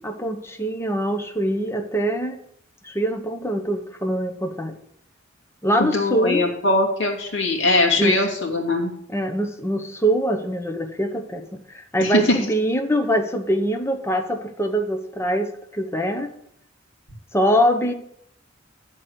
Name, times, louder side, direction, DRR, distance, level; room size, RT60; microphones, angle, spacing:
voice 1, 0.0-2.4 2.8-4.8 5.6-6.4 8.0-8.2 9.1-16.3 17.3-17.9, equal, 15° left, 5 dB, 0.9 m, -23 dB
voice 2, 5.8-8.9 12.0-12.4, left 2 dB, 65° left, -1 dB, 2.7 m, -21 dB
11.0 x 4.5 x 8.0 m, 0.72 s
head